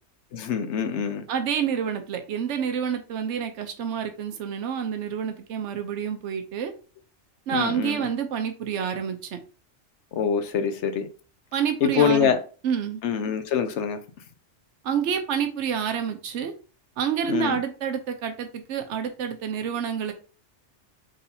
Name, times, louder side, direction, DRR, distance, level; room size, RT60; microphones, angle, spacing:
voice 1, 0.3-1.2 7.5-8.1 10.1-11.1 11.8-12.4 13.0-14.0 17.3-17.6, left 7 dB, 80° left, 1.0 m, -25 dB
voice 2, 1.3-6.7 7.5-9.4 11.5-12.3 12.6-13.0 14.8-16.5 17.0-20.1, right 7 dB, 80° right, 1.0 m, -28 dB
4.2 x 3.9 x 2.7 m
omnidirectional pair, 1.2 m